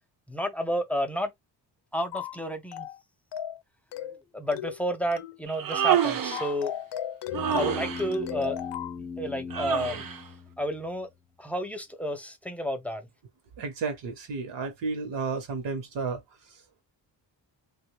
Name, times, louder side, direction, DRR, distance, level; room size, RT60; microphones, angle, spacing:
voice 1, 0.3-1.3 1.9-2.9 4.0-4.1 4.3-6.7 7.4-8.6 9.2-10.0 10.6-11.1 11.4-13.0, equal, 5° left, 0.3 m, -31 dB
sound 1, 2.1-2.4 2.7-3.0 3.3-3.6 3.9-4.2 4.5-4.8 5.1-5.4 5.7-5.9 6.3-9.0, left 11 dB, 70° left, 0.5 m, -36 dB
Human voice, 5.5-6.5 7.3-8.1 9.5-10.2, right 9 dB, 50° right, 0.5 m, -27 dB
sound 2, 7.3-11.0, left 5 dB, 30° left, 0.7 m, -39 dB
voice 2, 13.6-16.8, right 4 dB, 75° right, 0.9 m, -33 dB
3.0 x 2.2 x 3.2 m
wide cardioid pair, 155°, 43 cm